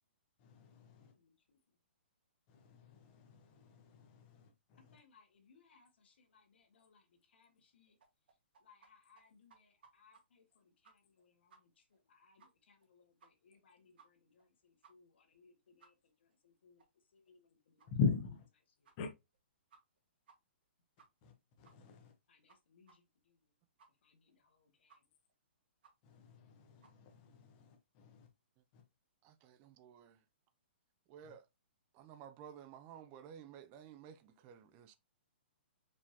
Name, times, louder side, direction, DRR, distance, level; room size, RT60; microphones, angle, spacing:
voice 1, 0.4-1.1 2.5-5.0 17.9-18.5 19.0-19.1 21.2-22.1 26.0-28.3 28.7-28.8 31.2-31.3, left 5 dB, 30° left, 1.0 m, -41 dB
voice 2, 0.9-1.8 4.8-8.0 8.3-17.9 18.8-18.9 22.3-23.6 23.9-25.1, left 5 dB, 70° left, 1.7 m, -69 dB
sound 1, 8.0-8.9 9.2-9.3 9.5-10.2 10.5-10.6 10.8-11.2 11.5-11.6 11.9-12.0 12.4-12.5 12.8-12.9 13.2-13.6 14.0-14.1 14.4-14.5 14.8-14.9 15.3-15.4 15.8-15.9 16.3-16.4 16.8-16.9 17.3-17.4 17.8-17.9 18.3-18.4 18.8-19.0 19.3-19.4 19.7-20.0 20.3-20.4 20.6-20.7 21.0-21.3 21.6-21.8 22.1-22.2 22.5-22.6 22.9-23.0 23.3-23.4 23.8-23.9 24.3-24.4 24.9-25.0 25.3-25.4 25.8-25.9 26.3-26.4 26.8-26.9, right 5 dB, 60° right, 1.6 m, -64 dB
voice 3, 29.2-30.2 31.1-31.5 31.9-35.0, right 8 dB, 25° right, 0.4 m, -54 dB
5.0 x 3.4 x 2.8 m
hypercardioid pair, 155°, 6 cm